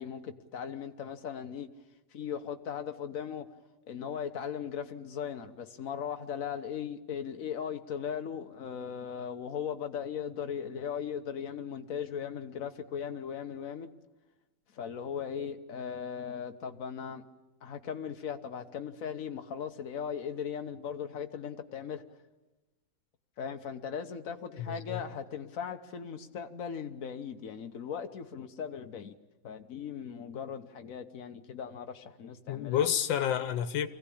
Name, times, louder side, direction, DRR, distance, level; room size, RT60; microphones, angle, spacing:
voice 1, 0.0-1.7 2.1-3.5 3.9-13.9 14.7-17.2 17.6-22.0 23.4-29.2 29.4-32.9, left 7 dB, 50° left, 1.4 m, -38 dB
voice 2, 24.6-25.0 32.5-33.9, left 9 dB, 90° left, 1.7 m, -29 dB
24.5 x 16.0 x 8.6 m
omnidirectional pair, 2.0 m